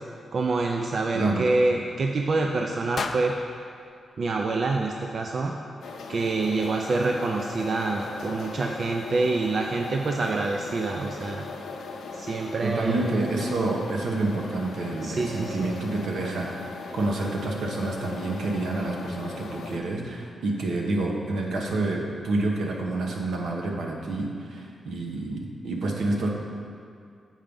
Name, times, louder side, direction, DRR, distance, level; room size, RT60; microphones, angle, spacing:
voice 1, 0.3-3.3 4.2-5.5 6.1-11.5 12.1-13.1 15.0-15.7, right 3 dB, 45° right, 2 dB, 0.4 m, -26 dB
voice 2, 1.1-1.5 12.6-26.3, right 2 dB, 75° right, 0 dB, 1.0 m, -28 dB
sound 1, 2.9-5.1, left 4 dB, 45° left, 0.4 m, -37 dB
sound 2, 5.8-19.8, left 4 dB, 85° left, 0.7 m, -39 dB
7.5 x 5.0 x 5.3 m, 2.3 s
wide cardioid pair, 140°, 0 cm